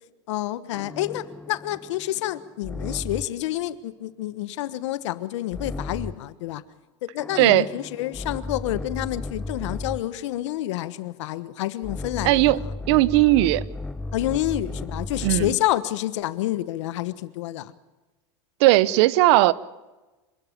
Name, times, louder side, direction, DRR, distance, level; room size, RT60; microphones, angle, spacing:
voice 1, 0.3-6.6 7.0-12.4 14.1-17.7, left 14 dB, 80° left, 1.2 m, -28 dB
sound 1, 0.7-3.5 5.5-6.3 7.2-10.2 11.8-15.7, left 2 dB, 5° left, 0.6 m, -35 dB
voice 2, 7.4-7.7 12.2-12.6 12.9-13.6 15.2-15.5 18.6-19.5, right 17 dB, 65° right, 0.9 m, -17 dB
26.5 x 12.5 x 8.7 m
supercardioid pair, 135°, 15 cm